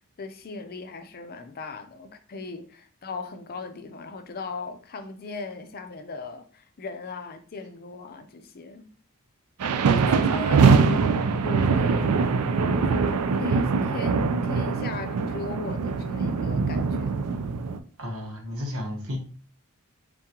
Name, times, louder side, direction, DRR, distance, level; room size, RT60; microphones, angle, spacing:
voice 1, 0.2-8.9 10.0-11.1 11.4-12.3 12.8-17.3, left 4 dB, 45° left, 0.5 m, -38 dB
sound 1, 9.6-17.8, right 5 dB, 90° right, 0.4 m, -23 dB
voice 2, 18.0-19.2, left 1 dB, 65° right, 1.0 m, -32 dB
3.7 x 3.6 x 2.9 m
head